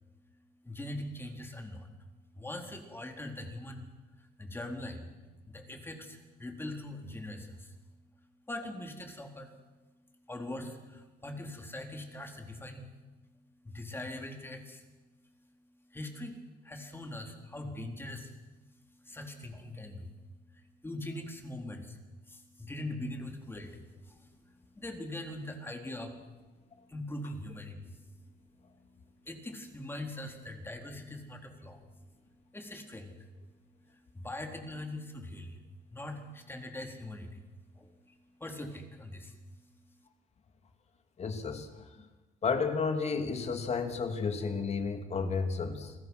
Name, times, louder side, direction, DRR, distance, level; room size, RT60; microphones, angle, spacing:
voice 1, 0.6-1.9 2.3-3.9 4.2-5.1 5.4-7.8 8.5-9.5 10.3-12.9 13.6-14.9 15.9-16.4 16.6-18.4 18.7-20.1 20.5-26.2 26.9-28.0 29.2-31.8 32.5-33.3 33.9-35.6 35.9-37.5 37.7-39.6, left 1 dB, 15° left, 3 dB, 3.9 m, -42 dB
voice 2, 41.2-42.1 42.4-45.9, left 5 dB, 40° left, 6 dB, 3.0 m, -32 dB
29.0 x 20.5 x 6.2 m, 1.2 s
cardioid pair, 110°, 17 cm